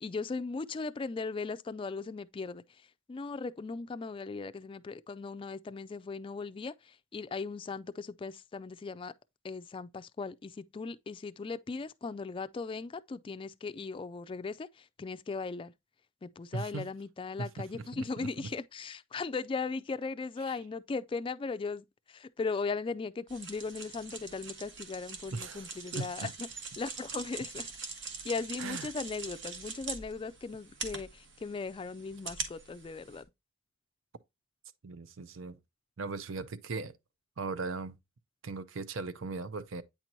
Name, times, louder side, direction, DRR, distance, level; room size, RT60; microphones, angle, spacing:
voice 1, 0.0-2.6 3.1-6.7 7.1-9.1 9.4-15.7 16.2-26.5 26.8-27.7 28.2-33.3, left 4 dB, 25° left, 0.3 m, -38 dB
voice 2, 16.5-16.9 17.4-18.5 20.4-20.6 25.3-26.3 28.6-28.9 34.8-35.6 36.0-36.9 37.4-37.9 38.4-39.8, right 3 dB, 90° right, 0.6 m, -39 dB
sound 1, 23.3-33.2, right 4 dB, 65° right, 1.3 m, -43 dB
8.8 x 4.5 x 2.7 m
head